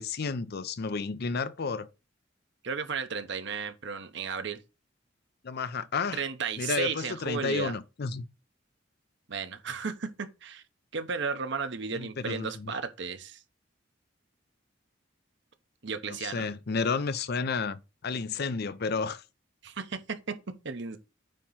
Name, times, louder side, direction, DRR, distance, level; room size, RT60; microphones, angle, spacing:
voice 1, 0.0-1.9 5.4-6.2 6.6-8.2 11.9-12.7 16.1-19.2, left 4 dB, 55° left, 0.6 m, -31 dB
voice 2, 2.6-4.6 6.1-7.7 9.3-10.6 10.9-13.4 15.8-16.5 19.6-20.0 20.6-21.0, right 5 dB, 65° right, 1.0 m, -34 dB
9.0 x 3.0 x 5.6 m
head